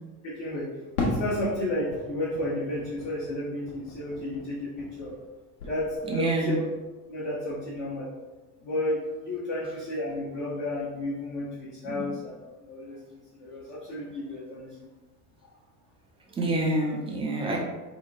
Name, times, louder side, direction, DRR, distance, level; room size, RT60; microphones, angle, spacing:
voice 1, 0.2-5.1 5.6-6.6 7.1-8.1 8.6-12.3 12.6-14.9, left 1 dB, 40° left, -8 dB, 0.8 m, -32 dB
Fireworks, 1.0-5.3 5.6-6.4, left 2 dB, 75° left, 0.7 m, -36 dB
voice 2, 6.1-6.6 11.8-12.0 16.4-17.6, right 1 dB, 15° right, -2 dB, 0.4 m, -27 dB
2.8 x 2.2 x 2.3 m, 1.2 s
figure-of-eight pair, 65°, 46 cm